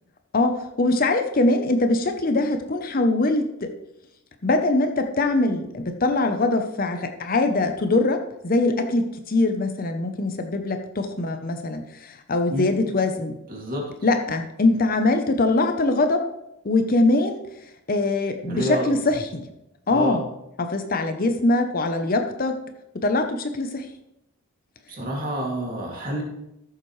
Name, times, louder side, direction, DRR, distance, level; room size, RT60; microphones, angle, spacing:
voice 1, 0.3-3.7 4.4-13.4 14.0-16.2 16.6-17.4 17.9-19.5 19.9-20.2 20.6-22.6 22.9-23.9, left 2 dB, 40° left, 6 dB, 0.7 m, -22 dB
voice 2, 13.5-13.9 18.5-18.9 19.9-20.2 24.9-26.2, equal, 40° right, -1 dB, 2.4 m, -28 dB
14.0 x 7.4 x 3.2 m, 0.86 s
head